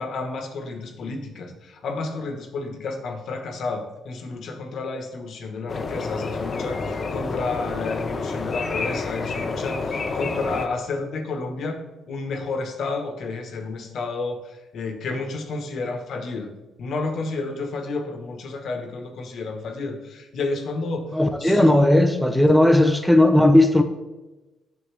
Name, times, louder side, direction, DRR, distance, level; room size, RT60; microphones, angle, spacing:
voice 1, 0.0-11.8 12.1-16.5 16.8-21.1 21.4-21.8 22.3-22.5, left 3 dB, 65° left, 5 dB, 1.2 m, -31 dB
sound 1, 5.7-10.7, left 3 dB, 40° left, 0.7 m, -29 dB
voice 2, 21.1-23.8, left 1 dB, ahead, 7 dB, 0.6 m, -16 dB
8.2 x 6.9 x 3.3 m, 1.1 s
cardioid pair, 90°, 0 cm